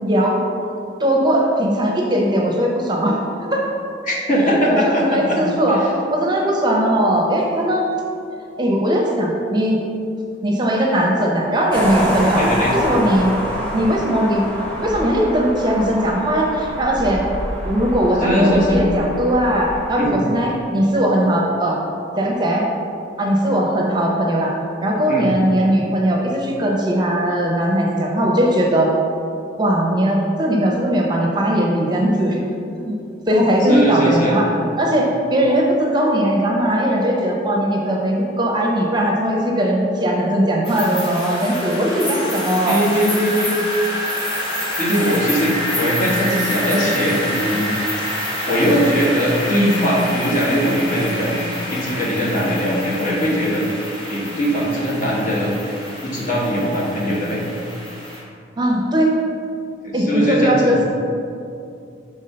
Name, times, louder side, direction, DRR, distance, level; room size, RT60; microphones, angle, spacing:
voice 1, 0.0-0.4 1.0-3.6 4.7-5.8 6.1-7.8 8.6-9.8 10.4-12.4 12.7-13.3 13.7-14.4 14.8-17.2 17.6-21.8 22.2-22.7 23.2-24.5 24.8-28.9 29.6-32.4 32.8-33.0 33.3-34.5 34.8-42.8 44.9-45.0 58.6-59.1 59.9-60.8, equal, 25° right, -1 dB, 0.7 m, -19 dB
voice 2, 4.0-5.4 5.7-5.8 12.4-12.7 18.2-18.8 20.0-20.2 25.1-25.3 33.7-34.4 42.7-43.5 44.8-47.7 48.5-51.4 51.7-53.6 54.1-55.5 56.0-57.4 59.8-60.7, equal, 45° left, -4 dB, 1.3 m, -20 dB
sound 1, 11.7-19.9, equal, 5° left, 1.0 m, -26 dB
sound 2, 40.6-58.2, equal, 30° left, 1.5 m, -27 dB
5.4 x 3.5 x 5.5 m, 2.6 s
head